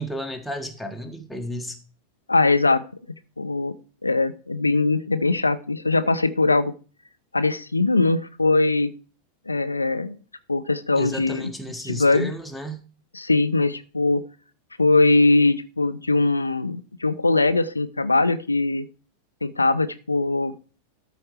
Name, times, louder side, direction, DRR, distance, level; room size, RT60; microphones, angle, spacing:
voice 1, 0.0-1.8 10.9-12.8, equal, 5° left, 1.5 m, -33 dB
voice 2, 2.3-2.8 3.4-3.7 4.0-6.7 7.3-8.9 9.5-10.2 10.5-11.5 11.8-12.3 13.1-14.2 14.8-18.9 19.4-20.5, left 3 dB, 80° left, 0.6 m, -21 dB
13.0 x 4.4 x 4.8 m
figure-of-eight pair, 90°, 0 cm